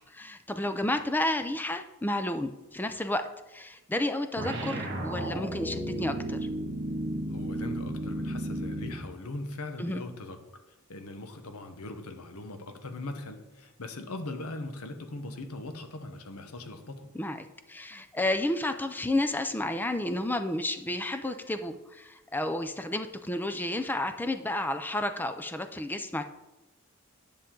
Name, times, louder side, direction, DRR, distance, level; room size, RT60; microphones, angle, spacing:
voice 1, 0.0-6.5 9.8-10.0 17.1-26.2, left 1 dB, 10° left, 8 dB, 0.4 m, -31 dB
sound 1, 4.4-9.1, right 1 dB, 50° right, 1.8 m, -33 dB
voice 2, 7.3-10.4 10.9-17.1, left 2 dB, 80° left, 7 dB, 1.0 m, -40 dB
10.0 x 7.0 x 3.8 m, 1.0 s
head